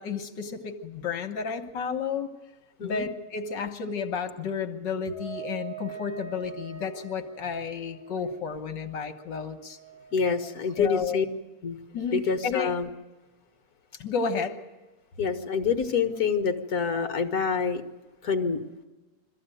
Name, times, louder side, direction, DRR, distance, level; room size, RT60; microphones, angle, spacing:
voice 1, 0.0-2.3 2.8-9.8 10.8-11.2 11.9-12.7 14.0-14.6, left 6 dB, 70° left, 6 dB, 1.9 m, -32 dB
Wind instrument woodwind instrument, 5.0-10.7, right 8 dB, 40° right, 5.2 m, -44 dB
voice 2, 10.1-11.3 11.6-11.8 12.1-12.9 15.2-17.8 18.2-18.6, left 5 dB, 55° left, 7 dB, 1.8 m, -26 dB
23.0 x 14.5 x 9.0 m, 1.2 s
omnidirectional pair, 2.0 m